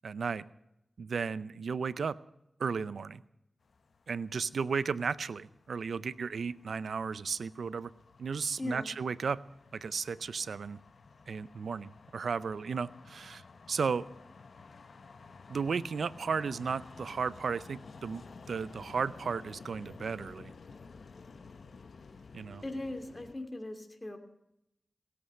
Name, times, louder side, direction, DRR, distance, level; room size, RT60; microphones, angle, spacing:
voice 1, 0.0-0.4 1.0-2.2 2.6-3.2 4.1-7.9 8.2-9.4 9.7-10.8 11.3-13.4 13.7-14.1 15.5-20.5 22.3-22.6, right 5 dB, 90° right, 18 dB, 0.5 m, -34 dB
sound 1, 3.6-23.4, left 4 dB, 80° left, 0.9 m, -53 dB
voice 2, 22.6-24.2, left 2 dB, 30° left, 6 dB, 2.6 m, -39 dB
17.0 x 8.0 x 9.6 m, 0.82 s
cardioid pair, 45°, 0 cm